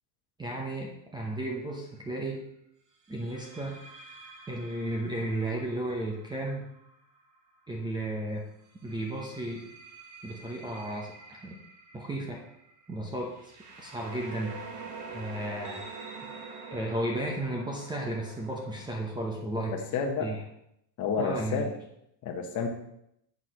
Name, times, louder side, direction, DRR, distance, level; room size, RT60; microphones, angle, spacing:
voice 1, 0.4-2.4 3.1-3.8 4.5-6.7 7.7-8.4 8.8-9.6 10.2-11.6 11.9-12.4 12.9-13.3 13.8-14.5 15.1-15.8 16.7-19.8 20.2-20.4 21.2-21.6, right 1 dB, 10° right, -1 dB, 0.7 m, -34 dB
sound 1, 1.3-1.6 3.1-7.8 8.6-19.1, right 4 dB, 35° right, 1.3 m, -47 dB
voice 2, 19.7-20.3 21.0-21.7 22.2-22.7, left 5 dB, 35° left, 4 dB, 1.1 m, -30 dB
8.2 x 4.8 x 5.7 m, 0.77 s
cardioid pair, 165°, 50 cm